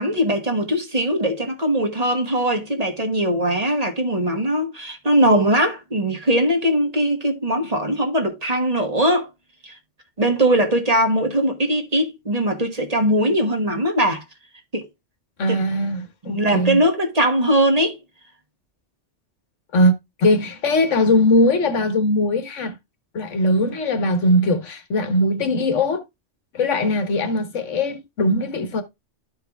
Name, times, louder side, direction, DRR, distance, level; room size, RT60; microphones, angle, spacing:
voice 1, 0.0-9.3 9.6-9.8 10.2-14.2 14.7-14.9 15.5-15.6 16.3-18.0, right 1 dB, 35° right, 1.3 m, -20 dB
voice 2, 15.4-16.8 19.7-19.9 20.2-22.8 23.1-26.0 26.5-28.8, left 1 dB, 90° left, 1.5 m, -20 dB
13.0 x 4.7 x 2.3 m
omnidirectional pair, 1.2 m